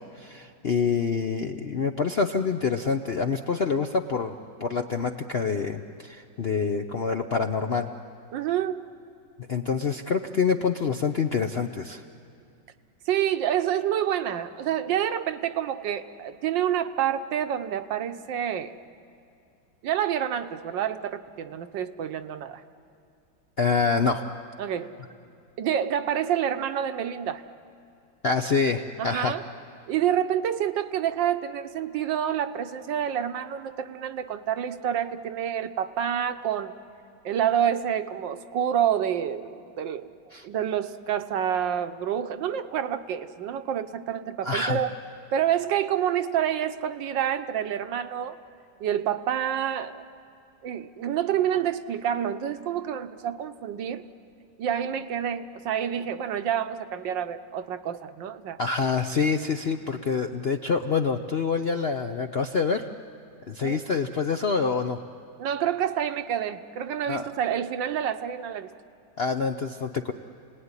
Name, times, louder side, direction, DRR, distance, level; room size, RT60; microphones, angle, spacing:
voice 1, 0.2-7.9 9.5-12.0 23.6-24.2 28.2-29.4 40.3-40.5 44.4-44.8 58.6-62.9 63.5-65.0 67.1-67.3 69.2-70.1, left 5 dB, 55° left, 6 dB, 0.6 m, -26 dB
voice 2, 8.3-8.8 13.1-18.7 19.8-22.6 24.6-24.9 25.6-27.4 29.0-29.4 29.9-36.7 37.2-40.1 40.4-44.9 45.3-48.4 48.8-50.1 50.6-54.1 54.6-58.6 63.6-63.9 65.4-68.7, right 9 dB, 80° right, 10 dB, 1.6 m, -28 dB
30.0 x 19.5 x 9.7 m, 2.5 s
omnidirectional pair, 2.0 m